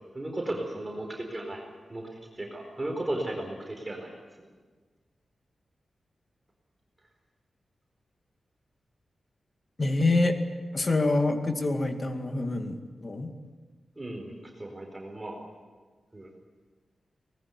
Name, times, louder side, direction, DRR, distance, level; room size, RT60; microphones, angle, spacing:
voice 1, 0.0-1.6 1.9-2.1 2.3-4.1 4.4-4.5 13.9-15.4 16.1-16.3, right 1 dB, 15° right, 0 dB, 4.4 m, -35 dB
voice 2, 9.8-10.4 10.7-13.3, left 2 dB, 30° left, 6 dB, 2.2 m, -26 dB
24.0 x 20.0 x 9.6 m, 1.4 s
wide cardioid pair, 145°, 0 cm